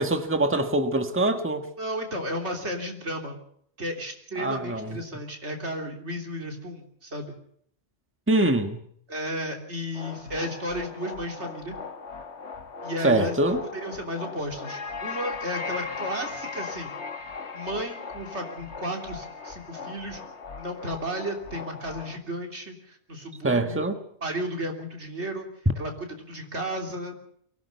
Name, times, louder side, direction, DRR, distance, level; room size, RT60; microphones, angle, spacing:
voice 1, 0.0-1.7 4.4-5.0 8.3-8.8 13.0-13.6 23.4-24.0, right 2 dB, 10° right, 6 dB, 1.5 m, -24 dB
voice 2, 1.8-3.4 3.8-7.3 9.1-11.7 12.8-13.4 13.7-17.0 17.5-20.2 20.6-23.9 24.2-25.5 25.8-27.2, equal, 80° right, 2 dB, 3.6 m, -33 dB
sound 1, 9.9-22.2, left 4 dB, 75° left, 1.7 m, -38 dB
23.5 x 16.5 x 6.8 m, 0.66 s
omnidirectional pair, 1.2 m